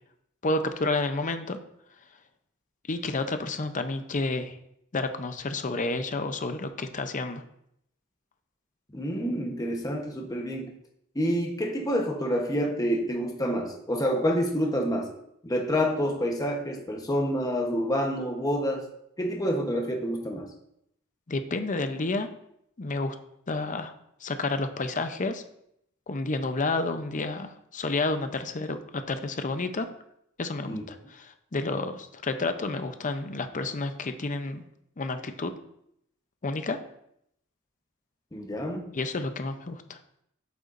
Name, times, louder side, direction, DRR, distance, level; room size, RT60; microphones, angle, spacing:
voice 1, 0.4-1.6 2.9-4.6 4.9-7.4 21.3-22.3 22.8-23.2 23.5-23.9 24.2-25.4 26.1-29.9 30.4-34.6 35.0-35.5 36.4-36.8 38.9-40.0, left 3 dB, 35° left, 8 dB, 0.6 m, -30 dB
voice 2, 8.9-10.7 11.1-15.1 15.4-18.8 19.2-20.5 30.7-30.8 38.3-38.9, equal, 15° left, 1 dB, 1.0 m, -28 dB
8.1 x 7.8 x 2.6 m, 0.75 s
head